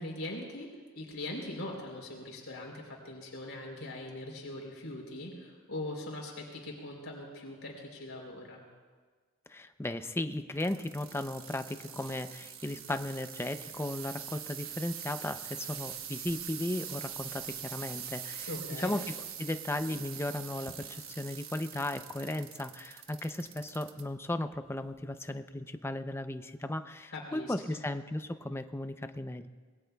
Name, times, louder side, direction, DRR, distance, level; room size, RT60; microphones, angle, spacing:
voice 1, 0.0-8.7 18.5-18.9 27.1-27.8, left 1 dB, 70° left, -1 dB, 3.5 m, -41 dB
voice 2, 9.5-18.5 18.8-19.0 19.4-29.5, left 1 dB, 10° left, 9 dB, 0.5 m, -36 dB
sound 1, 10.6-24.0 24.6-25.0 25.7-25.8, right 9 dB, 70° right, 1.2 m, -43 dB
25.5 x 21.0 x 2.3 m, 1.5 s
head